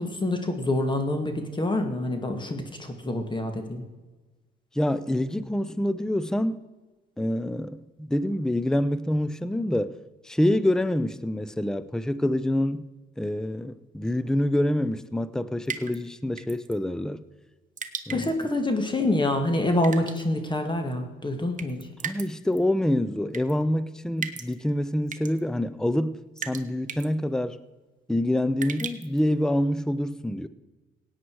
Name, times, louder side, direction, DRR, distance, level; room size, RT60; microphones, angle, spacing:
voice 1, 0.0-3.8 18.1-21.8, left 1 dB, 25° left, 2.0 m, -26 dB
voice 2, 4.7-6.6 7.2-10.0 10.2-12.8 13.2-17.2 18.1-18.3 22.0-27.6 28.1-30.5, left 1 dB, 5° left, 0.6 m, -26 dB
sound 1, 15.7-16.0 16.4-16.7 17.8-18.4 19.8-20.2 21.6-22.3 22.5-22.6 23.3-23.5 24.2-24.5 25.1-25.4 26.4-26.6 26.9-27.1 28.6-29.2, right 6 dB, 40° right, 1.1 m, -35 dB
16.5 x 9.1 x 4.7 m
cardioid pair, 90°, 20 cm